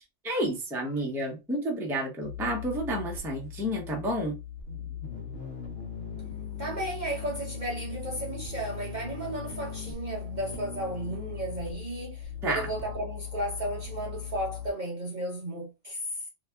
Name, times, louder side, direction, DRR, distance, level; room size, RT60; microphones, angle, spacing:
voice 1, 0.2-4.3 12.4-12.7, right 1 dB, 5° right, 0.4 m, -30 dB
sound 1, 2.2-14.7, left 8 dB, 70° left, 1.1 m, -39 dB
voice 2, 6.6-16.2, right 1 dB, 50° right, 0.6 m, -34 dB
2.7 x 2.2 x 3.3 m
omnidirectional pair, 1.3 m